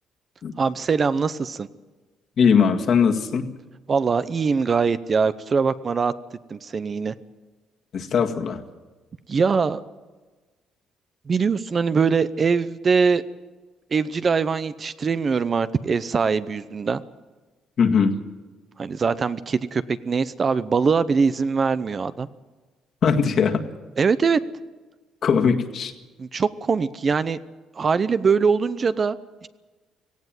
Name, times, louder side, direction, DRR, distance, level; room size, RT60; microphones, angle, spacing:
voice 1, 0.6-1.7 3.9-6.1 6.5-7.1 9.3-9.8 11.3-13.2 13.9-17.0 18.8-22.3 24.0-24.4 26.2-27.4 27.8-29.2 29.4-29.5, right 5 dB, 35° right, 14 dB, 0.7 m, -22 dB
voice 2, 2.4-3.5 7.9-8.6 17.8-18.2 23.0-23.6 25.2-25.9, left 6 dB, 50° left, 4 dB, 1.9 m, -20 dB
18.0 x 16.0 x 9.2 m, 1.2 s
cardioid pair, 130°, 0 cm